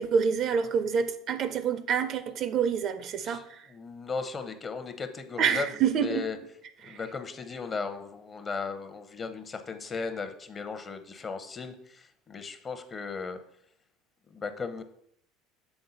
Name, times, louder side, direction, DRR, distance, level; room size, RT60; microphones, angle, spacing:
voice 1, 0.0-3.7 5.4-6.2 6.8-7.0, right 7 dB, 50° right, 12 dB, 0.5 m, -27 dB
voice 2, 3.2-6.4 6.9-13.4 14.3-14.8, left 4 dB, 30° left, 8 dB, 0.7 m, -36 dB
7.0 x 3.7 x 4.0 m, 0.70 s
hypercardioid pair, 70°, 0 cm